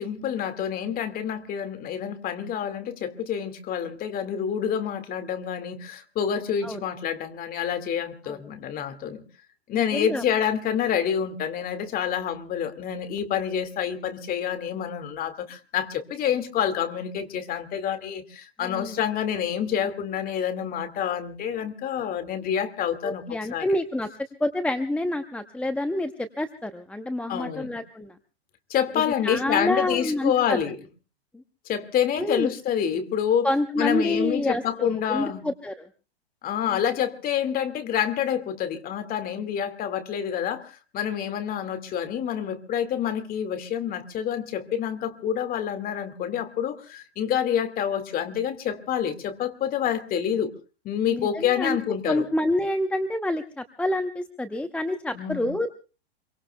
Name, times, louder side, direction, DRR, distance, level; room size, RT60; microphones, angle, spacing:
voice 1, 0.0-9.2 9.7-23.7 27.3-27.7 28.7-30.8 31.7-33.5 33.8-35.4 36.4-50.5 50.8-52.3 55.1-55.5, left 9 dB, 30° left, 9 dB, 2.0 m, -27 dB
voice 2, 9.7-10.2 18.6-19.0 23.0-24.1 24.4-28.1 28.9-30.6 31.3-31.4 32.2-32.5 33.4-35.8 36.6-36.8 51.1-51.8 52.1-55.8, left 1 dB, 5° left, 8 dB, 0.8 m, -28 dB
27.0 x 23.5 x 2.2 m, 0.36 s
hypercardioid pair, 120°, 31 cm